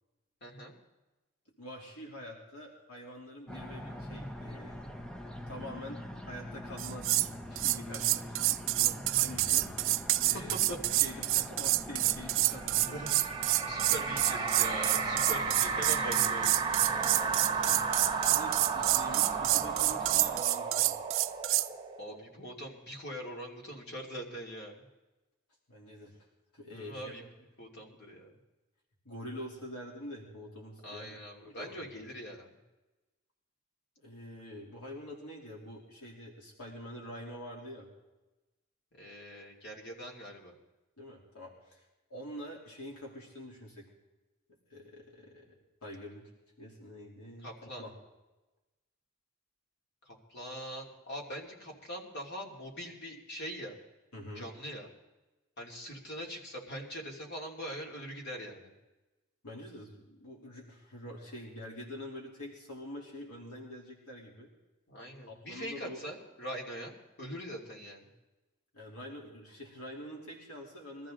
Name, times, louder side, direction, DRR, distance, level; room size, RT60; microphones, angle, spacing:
voice 1, 0.4-0.7 10.5-11.1 12.4-12.6 12.9-13.2 13.7-16.5 22.0-24.8 26.7-27.2 27.6-28.3 30.8-32.5 39.0-40.5 47.4-47.8 50.0-53.8 54.3-54.9 55.6-58.7 64.9-68.1, equal, 50° left, -1 dB, 3.0 m, -42 dB
voice 2, 1.6-4.9 5.5-7.1 7.5-10.6 10.9-12.9 17.5-17.8 18.3-21.0 25.7-26.2 26.5-27.3 29.0-31.2 31.4-31.9 34.0-37.9 41.0-41.8 42.1-43.9 44.7-45.5 45.8-46.3 46.6-47.9 54.1-54.5 59.4-64.5 65.3-66.0 68.7-71.1, equal, 80° left, -2 dB, 3.2 m, -46 dB
sound 1, 3.5-20.4, equal, 5° left, 0.7 m, -43 dB
sound 2, 6.8-7.3 7.6-21.7, right 17 dB, 60° right, 0.4 m, -28 dB
sound 3, 12.6-22.2, right 5 dB, 20° right, 1.3 m, -34 dB
22.5 x 14.0 x 3.9 m, 1.1 s
head